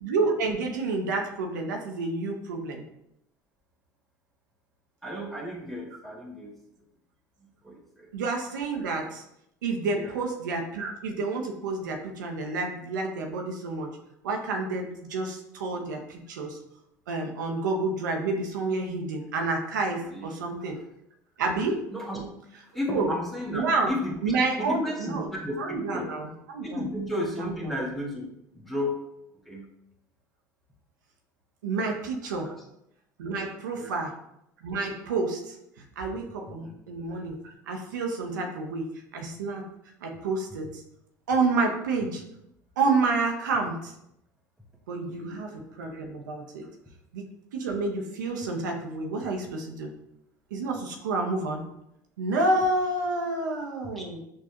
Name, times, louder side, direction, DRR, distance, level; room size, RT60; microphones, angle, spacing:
voice 1, 0.0-2.8 8.1-9.2 9.6-13.9 14.2-16.6 17.1-20.8 21.4-21.8 22.9-23.1 23.5-23.9 24.2-25.3 25.6-26.8 27.4-27.7 31.6-32.5 33.2-34.1 34.6-35.6 36.0-37.4 37.7-38.9 39.1-39.6 40.0-40.8 41.3-42.2 42.8-43.9 44.9-46.7 47.1-47.3 47.5-49.9 50.5-51.6 52.2-54.2, right 3 dB, 80° right, 2 dB, 0.6 m, -29 dB
voice 2, 5.0-6.5 7.6-8.1 9.9-10.2 20.1-20.7 21.9-22.3 22.7-24.2 24.6-26.1 26.6-28.3 28.5-29.0 29.5-29.7 32.4-32.6 33.7-33.9 36.6-36.8 45.1-45.4 53.9-54.0, left 1 dB, ahead, -1 dB, 1.2 m, -33 dB
6.2 x 2.3 x 2.8 m, 0.79 s
hypercardioid pair, 70°, 10 cm